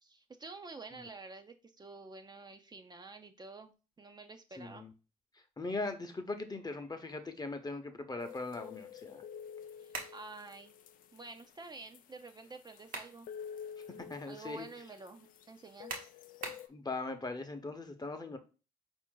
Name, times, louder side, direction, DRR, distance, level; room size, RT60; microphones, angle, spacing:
voice 1, 0.0-3.7 4.0-4.9 9.8-10.7 11.1-13.3 14.3-16.0, right 3 dB, 30° right, 0.5 m, -49 dB
voice 2, 4.6-4.9 5.6-9.2 14.1-14.7 16.7-18.4, left 3 dB, 25° left, 0.8 m, -40 dB
sound 1, 8.2-16.7, left 8 dB, 70° left, 0.4 m, -50 dB
sound 2, 9.9-10.2 12.6-13.2 13.7-13.8 15.9-16.7, right 4 dB, 70° right, 1.0 m, -42 dB
4.5 x 2.6 x 3.7 m
hypercardioid pair, 45°, 15 cm